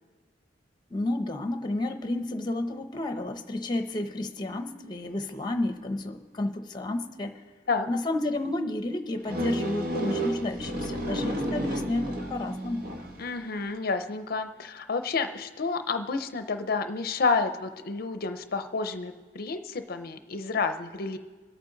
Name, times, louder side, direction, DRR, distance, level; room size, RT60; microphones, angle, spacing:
voice 1, 0.9-7.4 7.9-12.8, left 1 dB, 25° left, 7 dB, 0.8 m, -31 dB
sound 1, 9.3-13.3, right 1 dB, 55° right, 1.2 m, -31 dB
voice 2, 13.2-21.2, left 4 dB, 55° left, 9 dB, 0.6 m, -30 dB
22.5 x 8.8 x 3.9 m, 1.3 s
head